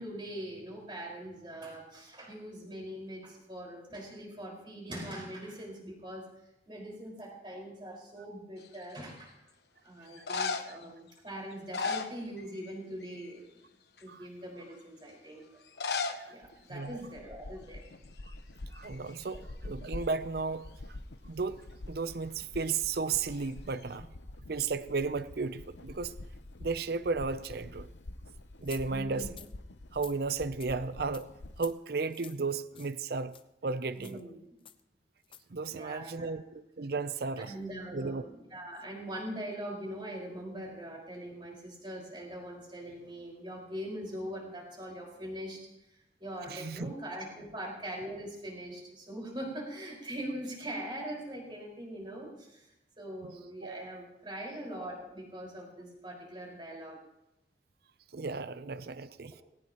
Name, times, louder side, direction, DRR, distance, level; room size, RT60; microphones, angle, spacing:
voice 1, 0.0-6.3 6.7-9.3 9.8-13.4 14.0-15.4 16.3-17.8 19.3-19.4 28.8-29.3 33.9-34.4 35.7-36.4 37.4-45.6 46.2-52.7 53.0-57.0, right 1 dB, 25° right, -2 dB, 5.0 m, -42 dB
sound 1, 8.6-9.1 10.1-10.8 11.5-12.7 13.0-13.4 14.0-14.1 15.6-16.2 16.5-16.6 16.8-16.9 17.7-17.9 18.2-19.4 23.3-23.9, left 4 dB, 65° left, 1.2 m, -36 dB
sound 2, 16.4-31.7, left 1 dB, 80° left, 0.9 m, -47 dB
voice 2, 16.7-17.0 18.7-20.7 21.2-24.1 24.5-26.1 26.6-27.9 28.6-29.3 29.9-31.3 31.6-33.4 33.6-34.2 35.5-37.5 37.9-38.2 46.5-46.9 53.2-53.3 53.6-53.8 58.1-59.3, right 4 dB, 60° right, 14 dB, 0.6 m, -34 dB
sound 3, 28.7-28.8 29.3-29.5 29.9-30.2 30.6-30.7 31.1-31.3 31.6-31.7 32.1-32.4 32.7-33.0 33.3-33.4 34.0-34.2 34.7-34.8 35.2-35.4, left 9 dB, 30° left, 0.7 m, -50 dB
19.5 x 17.5 x 3.0 m, 0.89 s
head